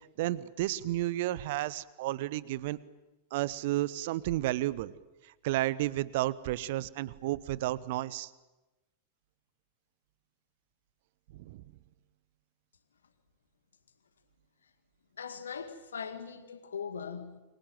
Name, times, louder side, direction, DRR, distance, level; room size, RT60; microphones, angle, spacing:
voice 1, 0.2-2.8 3.3-4.9 5.2-8.3 11.3-11.6, right 16 dB, 50° right, 1.0 m, -32 dB
voice 2, 15.2-17.4, left 6 dB, 70° left, 1.9 m, -40 dB
29.0 x 24.5 x 7.7 m
figure-of-eight pair, 90°, 0 cm